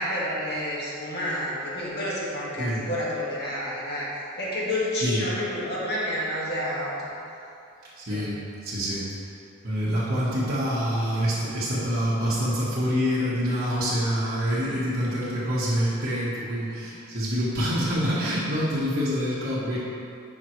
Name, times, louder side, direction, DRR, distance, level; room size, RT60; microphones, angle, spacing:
voice 1, 0.0-4.1 4.4-7.1 8.1-8.3 11.2-11.3 14.7-14.8, left 1 dB, 55° left, -7 dB, 1.7 m, -29 dB
voice 2, 8.0-9.1 9.6-19.8, equal, 50° right, -10 dB, 1.3 m, -26 dB
11.5 x 4.4 x 3.2 m, 2.6 s
head